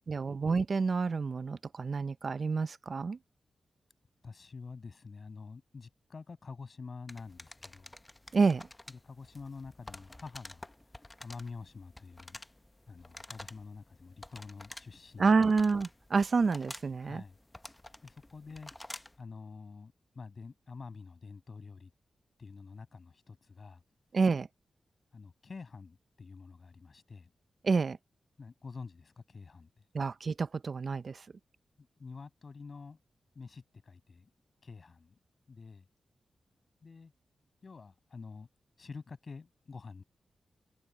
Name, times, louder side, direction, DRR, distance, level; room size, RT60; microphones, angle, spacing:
voice 1, 0.1-3.2 8.3-8.6 15.2-17.2 24.1-24.5 27.6-28.0 29.9-31.3, right 4 dB, 50° right, 0.5 m, -28 dB
voice 2, 4.2-8.0 9.0-10.7 11.2-12.4 12.9-15.5 17.0-17.4 18.0-18.7 19.2-21.9 22.4-23.8 25.1-27.3 28.4-29.7 31.8-33.0 33.4-34.3 34.6-35.2 35.5-35.9 36.8-37.1 37.6-38.5 38.8-40.0, left 4 dB, 45° left, 7.0 m, -47 dB
sound 1, 7.1-19.2, left 1 dB, 15° left, 0.6 m, -50 dB
wide cardioid pair, 100°, 0 cm